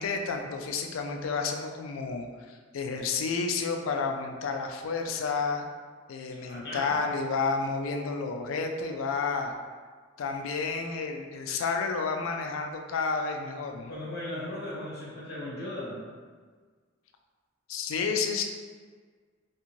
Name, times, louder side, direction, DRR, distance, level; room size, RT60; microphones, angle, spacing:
voice 1, 0.0-5.6 6.1-9.5 10.2-13.9 17.7-18.4, left 4 dB, 85° left, 4 dB, 0.3 m, -31 dB
voice 2, 6.4-7.0 13.9-16.0, left 1 dB, 55° left, -6 dB, 0.9 m, -37 dB
2.6 x 2.5 x 2.9 m, 1.5 s
head